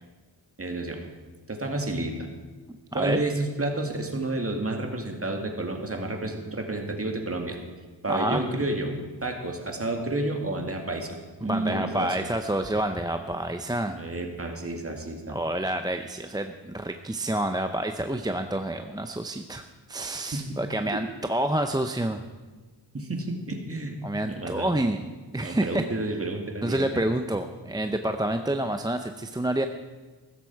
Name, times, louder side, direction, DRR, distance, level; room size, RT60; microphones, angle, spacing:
voice 1, 0.6-1.0 1.5-2.3 2.9-7.6 8.0-12.1 13.9-15.4 20.3-20.4 20.9-21.0 22.9-24.0 24.3-24.7 25.4-27.0, right 2 dB, 30° right, 3 dB, 2.2 m, -30 dB
voice 2, 2.9-3.2 8.1-8.4 11.4-14.0 15.3-22.2 24.0-25.0 25.3-25.9 26.6-29.7, right 1 dB, 10° right, 6 dB, 0.6 m, -28 dB
15.5 x 13.5 x 4.6 m, 1.3 s
wide cardioid pair, 110°, 43 cm